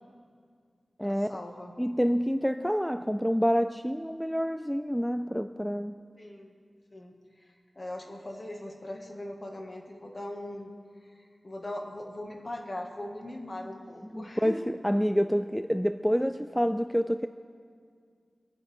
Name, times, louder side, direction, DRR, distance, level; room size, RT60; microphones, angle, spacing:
voice 1, 1.0-1.7 6.2-6.5 6.9-10.7 11.0-14.7, left 1 dB, 40° left, 1 dB, 2.1 m, -40 dB
voice 2, 1.8-6.0 14.1-14.5 14.8-17.3, equal, ahead, 10 dB, 0.4 m, -27 dB
25.5 x 9.7 x 3.7 m, 2.2 s
cardioid pair, 45°, 0 cm